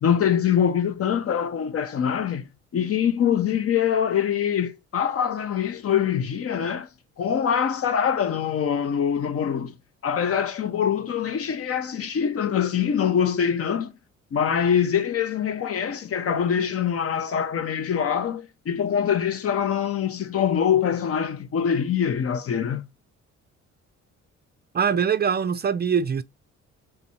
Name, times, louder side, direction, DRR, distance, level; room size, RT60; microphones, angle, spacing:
voice 1, 0.0-2.5 2.7-6.9 7.2-9.7 10.0-13.9 14.3-22.9, left 8 dB, 50° left, 0.7 m, -24 dB
voice 2, 24.7-26.2, right 7 dB, 35° right, 0.4 m, -23 dB
3.7 x 2.6 x 4.3 m
cardioid pair, 90°, 30 cm